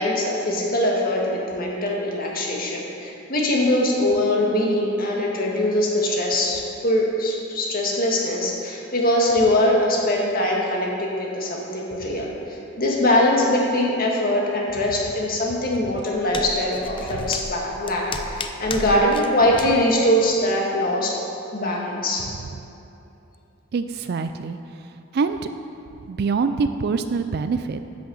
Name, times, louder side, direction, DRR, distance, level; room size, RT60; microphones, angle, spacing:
voice 1, 0.0-21.2 21.5-22.3, left 1 dB, 45° left, -2 dB, 1.8 m, -22 dB
sound 1, 15.7-19.3 19.5-19.7, left 3 dB, 25° left, 0.5 m, -34 dB
voice 2, 23.7-24.6 25.1-25.4 26.1-27.8, right 4 dB, 50° right, 9 dB, 0.4 m, -24 dB
10.5 x 6.3 x 7.1 m, 2.8 s
head